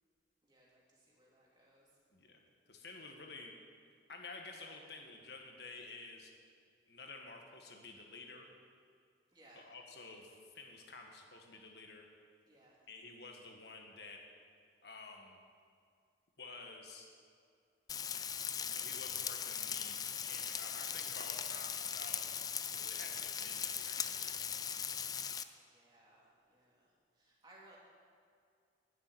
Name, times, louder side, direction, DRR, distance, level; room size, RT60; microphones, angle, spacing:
voice 1, 0.4-1.9 9.3-9.6 12.5-12.8 25.4-26.9 27.2-27.8, right 1 dB, 25° right, -5 dB, 2.9 m, -63 dB
voice 2, 2.7-3.5 4.1-6.3 6.9-8.5 9.5-12.1 12.9-14.2 14.8-15.4 16.4-17.1 18.6-24.3, left 3 dB, 60° left, 2 dB, 1.5 m, -51 dB
Frying (food), 17.9-25.4, left 8 dB, 20° left, 0.3 m, -39 dB
11.0 x 6.9 x 9.6 m, 2.3 s
head